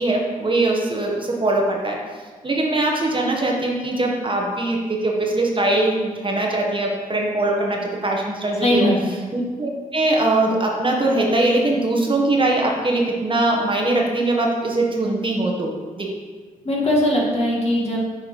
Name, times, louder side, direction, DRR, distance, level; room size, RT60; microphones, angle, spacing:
voice 1, 0.0-2.0 2.4-8.9 9.3-15.7 15.9-16.1, right 2 dB, 35° right, -1 dB, 1.4 m, -21 dB
voice 2, 8.6-9.2 16.6-18.0, left 1 dB, 45° left, -3 dB, 2.2 m, -20 dB
6.7 x 4.7 x 4.7 m, 1.4 s
supercardioid pair, 50°, 15 cm